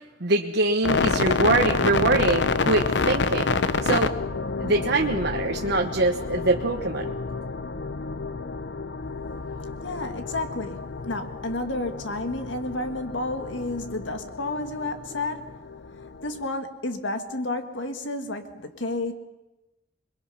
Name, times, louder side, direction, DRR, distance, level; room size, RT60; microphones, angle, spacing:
voice 1, 0.2-3.5 3.8-4.1 4.6-7.1, right 2 dB, 65° right, 2 dB, 1.1 m, -23 dB
sound 1, 0.8-16.4, left 4 dB, 70° left, 0.8 m, -29 dB
voice 2, 9.8-15.5 16.2-19.1, left 2 dB, 85° left, 6 dB, 1.9 m, -31 dB
27.5 x 22.0 x 5.8 m, 1.0 s
head